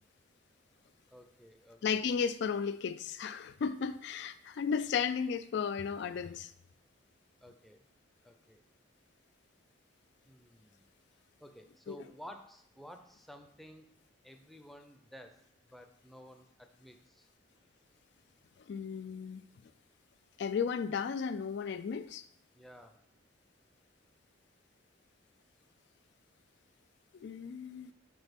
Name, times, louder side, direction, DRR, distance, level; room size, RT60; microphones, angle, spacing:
voice 1, 1.1-2.0 7.4-7.9 8.2-8.6 10.2-10.9 11.4-13.9 14.2-17.3 22.5-23.0, equal, ahead, 0.6 m, -53 dB
voice 2, 1.8-6.5 11.9-12.0 18.7-19.4 20.4-22.2 27.2-27.9, left 6 dB, 60° left, 0.3 m, -34 dB
6.1 x 5.0 x 5.2 m
head